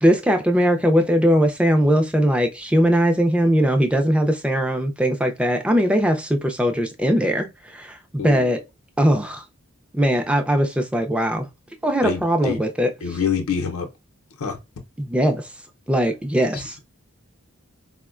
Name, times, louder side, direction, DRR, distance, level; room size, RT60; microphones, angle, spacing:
voice 1, 0.0-8.0 8.2-8.6 9.0-9.4 9.9-11.5 11.8-12.9 15.0-15.5 15.9-16.8, equal, 5° right, 0.4 m, -20 dB
voice 2, 12.0-12.6 13.0-13.9 14.4-14.6 16.5-16.6, left 6 dB, 85° left, 0.6 m, -26 dB
4.3 x 2.1 x 2.3 m
head